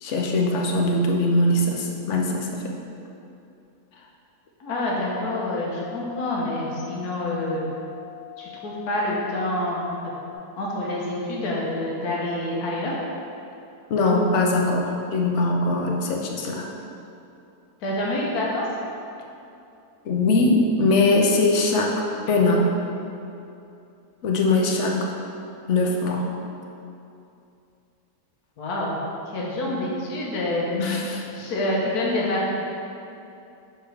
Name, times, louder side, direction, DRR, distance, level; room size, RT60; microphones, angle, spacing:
voice 1, 0.0-2.7 13.9-16.7 20.0-21.9 22.3-22.8 24.2-25.0 25.7-26.2 30.7-31.3, left 2 dB, 60° left, 0 dB, 0.9 m, -21 dB
voice 2, 4.6-7.6 8.4-9.9 10.6-12.9 17.8-18.6 28.6-29.0 29.3-30.6 31.3-32.5, left 1 dB, 80° left, -4 dB, 1.5 m, -27 dB
sound 1, 5.2-10.4, left 17 dB, 30° right, 0.4 m, -42 dB
6.5 x 4.5 x 3.4 m, 2.7 s
omnidirectional pair, 1.6 m